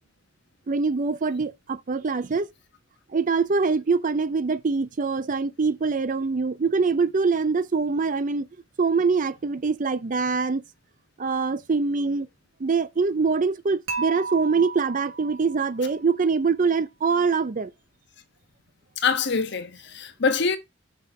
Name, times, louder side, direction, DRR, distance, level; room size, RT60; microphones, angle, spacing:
voice 1, 0.7-2.5 3.1-8.5 8.8-10.6 11.2-12.3 12.6-17.7, right 4 dB, 40° right, 0.5 m, -24 dB
Dishes pots and pans / Chink clink, 13.9-16.0, right 4 dB, 90° right, 2.1 m, -34 dB
voice 2, 19.0-20.6, left 5 dB, 60° left, 0.9 m, -24 dB
6.0 x 3.4 x 5.8 m
head